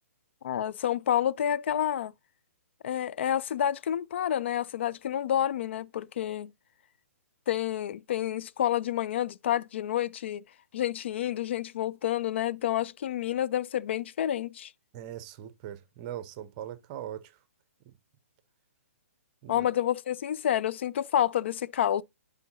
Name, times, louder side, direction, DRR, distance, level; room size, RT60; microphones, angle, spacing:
voice 1, 0.4-2.1 2.8-6.5 7.5-10.4 10.7-14.7 19.5-22.0, left 11 dB, 50° left, 0.4 m, -29 dB
voice 2, 14.9-17.2 17.9-18.0 19.4-19.7, right 11 dB, 35° right, 0.7 m, -40 dB
10.5 x 3.8 x 2.6 m
figure-of-eight pair, 125°, 8 cm